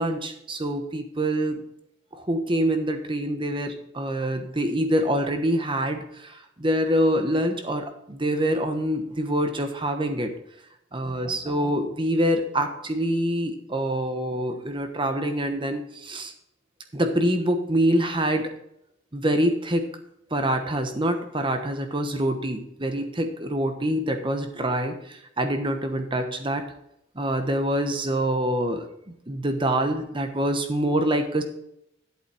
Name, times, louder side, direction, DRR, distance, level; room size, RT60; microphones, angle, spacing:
voice 1, 0.0-1.6 2.1-10.3 10.9-16.3 16.9-18.5 19.1-19.9 20.3-26.6 27.1-28.8 29.3-31.4, right 1 dB, 25° right, 6 dB, 1.1 m, -25 dB
11.0 x 8.1 x 4.4 m, 0.79 s
head